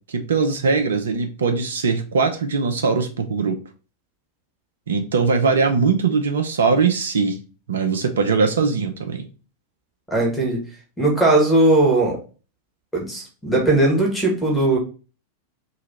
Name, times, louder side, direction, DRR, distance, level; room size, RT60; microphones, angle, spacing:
voice 1, 0.1-3.6 4.9-7.4 7.7-9.3, right 5 dB, 65° right, 6 dB, 0.5 m, -21 dB
voice 2, 10.1-10.6 11.0-12.2 12.9-14.8, right 2 dB, 10° left, 1 dB, 1.7 m, -18 dB
3.1 x 2.9 x 4.0 m, 0.35 s
figure-of-eight pair, 90°, 0 cm